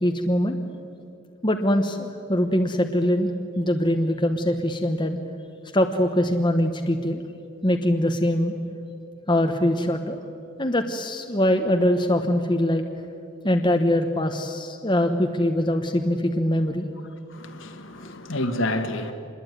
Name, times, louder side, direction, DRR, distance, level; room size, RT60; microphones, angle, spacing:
voice 1, 0.0-0.6 1.4-5.2 5.7-7.2 7.6-8.5 9.3-10.2 10.6-12.8 13.4-16.9 18.0-18.1, left 1 dB, 20° left, 4 dB, 1.1 m, -23 dB
voice 2, 17.3-19.1, left 1 dB, 55° left, 6 dB, 1.9 m, -29 dB
26.5 x 21.5 x 9.4 m, 2.6 s
head